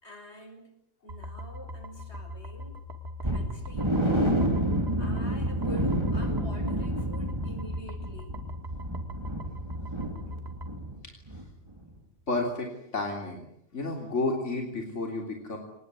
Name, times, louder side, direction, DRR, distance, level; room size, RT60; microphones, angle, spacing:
voice 1, 0.0-0.7 1.0-2.8 3.2-4.1 5.0-8.4, equal, 65° left, 6 dB, 6.0 m, -46 dB
sound 1, 1.1-10.8, left 1 dB, 60° right, 2.6 m, -41 dB
sound 2, 3.2-11.0 11.3-11.4 11.9-12.0, right 1 dB, 25° right, 3.2 m, -29 dB
voice 2, 12.3-13.4 13.7-15.6, left 2 dB, 90° left, 1 dB, 3.8 m, -31 dB
24.0 x 20.0 x 9.6 m, 0.77 s
omnidirectional pair, 1.2 m